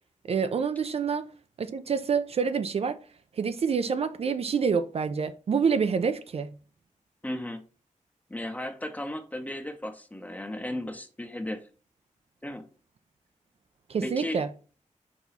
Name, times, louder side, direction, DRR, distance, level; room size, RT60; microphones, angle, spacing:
voice 1, 0.3-1.3 1.6-3.0 3.3-6.5 13.9-14.5, right 6 dB, 50° right, 0.4 m, -27 dB
voice 2, 7.2-7.6 8.3-11.7 12.4-12.6 14.0-14.4, left 1 dB, 10° left, 0.7 m, -35 dB
6.0 x 3.0 x 5.4 m
wide cardioid pair, 160°, 13 cm